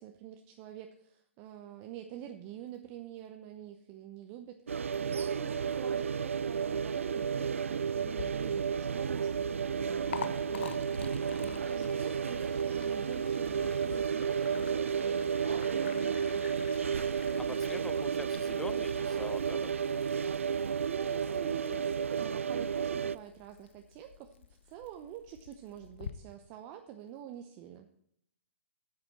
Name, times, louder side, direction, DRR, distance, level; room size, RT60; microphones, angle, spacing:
voice 1, 0.0-11.1 11.4-16.9 20.6-27.9, right 10 dB, 35° right, 6 dB, 0.8 m, -47 dB
sound 1, 4.7-23.2, right 7 dB, 75° right, 0.4 m, -32 dB
Liquid, 8.1-26.1, left 7 dB, 60° left, 0.8 m, -49 dB
voice 2, 17.4-19.7, left 3 dB, 5° left, 15 dB, 0.5 m, -44 dB
11.0 x 8.6 x 4.3 m, 0.70 s
figure-of-eight pair, 120°, 7 cm